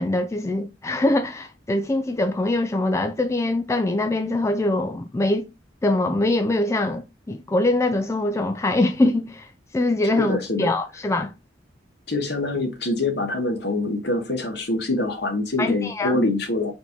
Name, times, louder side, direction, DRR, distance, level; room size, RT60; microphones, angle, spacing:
voice 1, 0.0-5.5 5.8-11.3 15.6-16.3, left 2 dB, 15° left, 0.3 m, -23 dB
voice 2, 10.2-10.7 12.1-16.7, left 2 dB, 65° left, 1.4 m, -25 dB
4.3 x 2.7 x 4.5 m
head